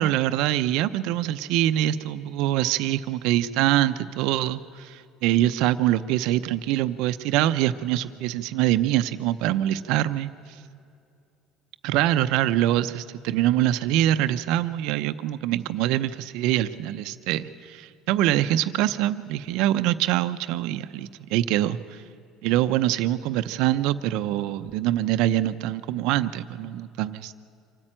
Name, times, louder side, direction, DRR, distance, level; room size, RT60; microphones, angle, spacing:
voice 1, 0.0-10.3 11.8-21.8 22.4-27.4, right 13 dB, 75° right, 12 dB, 0.7 m, -24 dB
25.0 x 13.5 x 8.9 m, 2.5 s
supercardioid pair, 110°, 0 cm